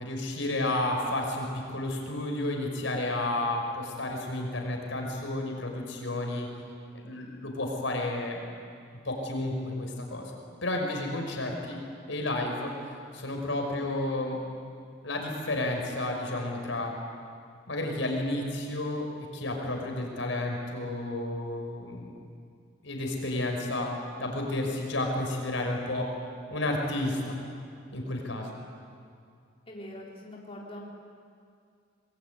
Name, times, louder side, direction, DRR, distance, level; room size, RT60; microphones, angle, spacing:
voice 1, 0.0-6.5 6.9-8.5 9.0-10.3 10.6-11.8 12.1-12.7 13.1-14.4 15.0-16.9 17.7-19.1 19.3-22.1 22.8-23.9 24.2-26.1 26.5-27.4 27.9-28.5, left 1 dB, 80° left, 2 dB, 5.7 m, -31 dB
voice 2, 29.7-30.8, left 1 dB, 30° left, -3 dB, 4.1 m, -43 dB
26.0 x 22.0 x 9.7 m, 2.3 s
head